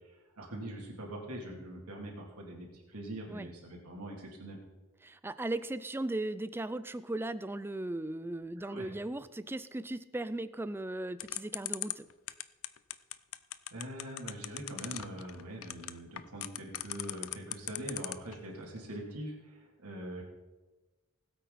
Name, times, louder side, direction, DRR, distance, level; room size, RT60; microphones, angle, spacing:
voice 1, 0.3-4.6 8.6-8.9 13.7-20.2, right 1 dB, 90° right, -1 dB, 3.0 m, -43 dB
voice 2, 5.0-12.1, right 2 dB, 10° right, 14 dB, 0.4 m, -37 dB
sound 1, 11.2-18.3, left 15 dB, 65° left, 0.5 m, -38 dB
19.5 x 8.4 x 4.2 m, 1.2 s
head